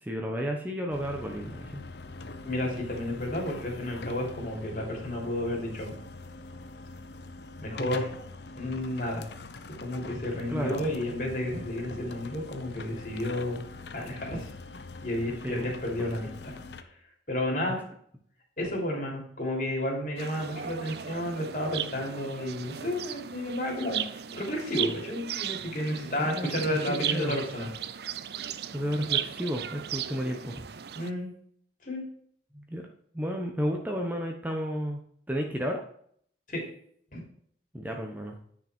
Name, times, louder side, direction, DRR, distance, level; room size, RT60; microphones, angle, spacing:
voice 1, 0.0-1.8 10.5-10.8 15.4-15.7 16.0-16.2 26.2-27.4 28.7-30.6 32.5-32.8 33.1-35.0 35.3-35.8 37.7-38.3, equal, 10° right, 1 dB, 1.0 m, -32 dB
sound 1, 0.9-16.8, left 3 dB, 65° left, 0.8 m, -43 dB
voice 2, 2.4-5.9 7.6-8.1 8.6-9.2 9.8-13.6 13.9-14.5 15.0-16.6 17.3-17.8 18.6-27.7 30.9-31.3 31.8-32.0 36.5-36.6 37.1-37.2, left 1 dB, 45° left, -1 dB, 3.4 m, -32 dB
sound 2, 20.2-31.1, right 10 dB, 60° right, 0.5 m, -36 dB
10.0 x 6.0 x 4.5 m, 0.62 s
head